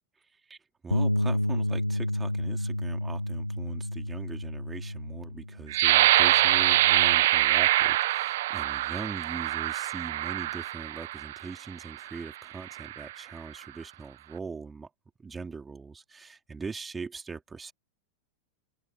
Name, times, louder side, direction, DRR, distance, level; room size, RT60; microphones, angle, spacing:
voice 1, 0.8-14.9 15.2-17.7, right 4 dB, 15° right, 3.9 m, -41 dB
Bass guitar, 0.9-7.2, left 1 dB, 85° left, 2.2 m, -31 dB
sound 1, 5.7-11.4 12.0-12.2 12.7-13.1, right 15 dB, 55° right, 1.5 m, -24 dB
figure-of-eight pair, 90°, 0 cm